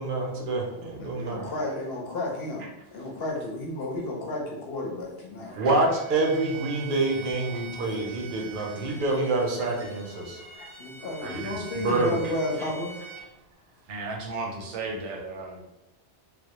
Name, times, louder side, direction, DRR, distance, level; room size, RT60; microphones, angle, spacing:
voice 1, 0.0-1.5 5.5-10.4 11.3-11.4 11.8-12.1, right 2 dB, 60° right, 0 dB, 0.6 m, -27 dB
voice 2, 0.7-5.6 8.4-8.9 9.6-9.7 10.1-13.0, left 1 dB, 65° left, -1 dB, 0.7 m, -33 dB
Bowed string instrument, 5.9-13.3, right 5 dB, 15° right, 0.5 m, -44 dB
voice 3, 11.2-11.6 13.9-15.6, right 3 dB, 85° right, 1 dB, 0.9 m, -35 dB
2.1 x 2.0 x 2.8 m, 0.90 s
omnidirectional pair, 1.2 m